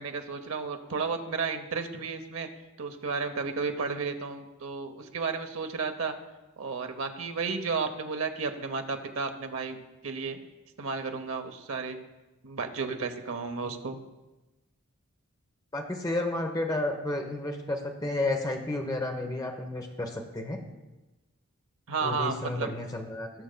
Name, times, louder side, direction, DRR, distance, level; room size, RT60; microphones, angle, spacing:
voice 1, 0.0-2.5 2.8-6.2 6.6-10.4 10.8-12.0 12.4-14.0 21.9-22.7, right 4 dB, 70° right, 7 dB, 0.8 m, -33 dB
voice 2, 15.7-20.6 22.0-23.3, left 2 dB, 15° left, 3 dB, 0.9 m, -31 dB
18.0 x 6.4 x 2.2 m, 1.1 s
head